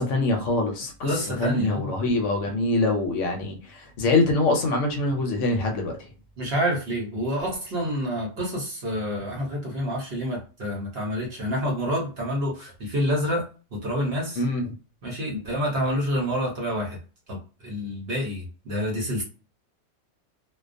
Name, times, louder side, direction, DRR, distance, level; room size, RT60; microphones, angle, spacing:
voice 1, 0.0-5.9 14.4-14.7, left 2 dB, 70° left, 3 dB, 0.8 m, -24 dB
voice 2, 1.0-2.0 6.4-13.4 13.7-14.4 15.0-17.0 17.3-19.2, equal, 55° right, -1 dB, 0.9 m, -28 dB
2.2 x 2.2 x 2.5 m, 0.34 s
omnidirectional pair, 1.4 m